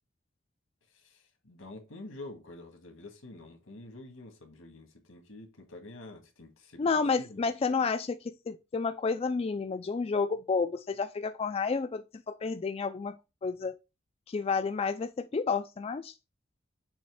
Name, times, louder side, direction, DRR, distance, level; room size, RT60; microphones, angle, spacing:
voice 1, 0.9-7.5, left 2 dB, 85° left, 1.8 m, -48 dB
voice 2, 6.8-13.8 14.3-16.1, left 4 dB, 30° left, 0.3 m, -31 dB
7.0 x 3.0 x 4.8 m
head